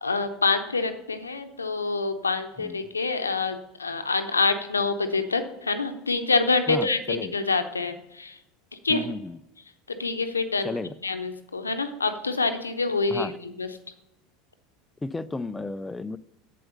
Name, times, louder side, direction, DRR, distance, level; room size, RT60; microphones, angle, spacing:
voice 1, 0.0-8.4 8.8-9.1 9.9-10.7 11.0-13.7, left 3 dB, 85° left, 9 dB, 0.8 m, -26 dB
voice 2, 6.7-7.3 8.9-9.4 10.6-10.9 13.1-13.4 15.0-16.2, left 3 dB, 15° left, 13 dB, 0.4 m, -33 dB
8.4 x 7.7 x 5.5 m, 0.87 s
figure-of-eight pair, 75°, 0 cm